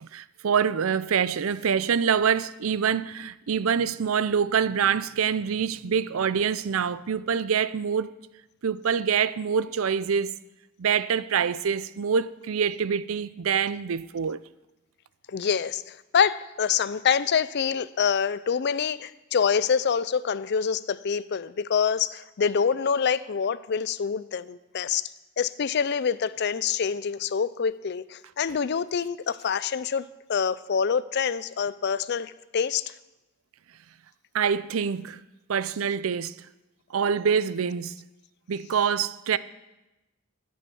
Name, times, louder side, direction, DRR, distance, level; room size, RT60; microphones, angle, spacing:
voice 1, 0.0-8.1 8.6-10.4 10.8-14.4 34.3-35.2 35.5-36.3 36.9-37.9 38.5-39.4, right 7 dB, 85° right, 0.5 m, -25 dB
voice 2, 15.3-25.1 25.4-32.9, left 6 dB, 55° left, 0.4 m, -26 dB
11.5 x 8.6 x 7.1 m
head